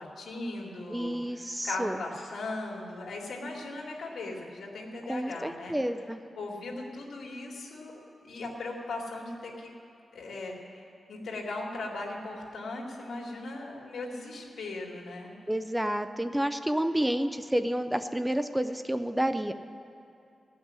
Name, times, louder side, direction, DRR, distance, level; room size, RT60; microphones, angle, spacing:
voice 1, 0.0-5.8 6.4-9.7 10.1-10.8 11.1-15.3, left 2 dB, 80° left, -2 dB, 2.3 m, -38 dB
voice 2, 0.9-2.0 5.1-6.2 15.5-19.5, right 1 dB, 5° right, 9 dB, 0.4 m, -29 dB
17.0 x 6.1 x 9.6 m, 2.7 s
wide cardioid pair, 175°, 0 cm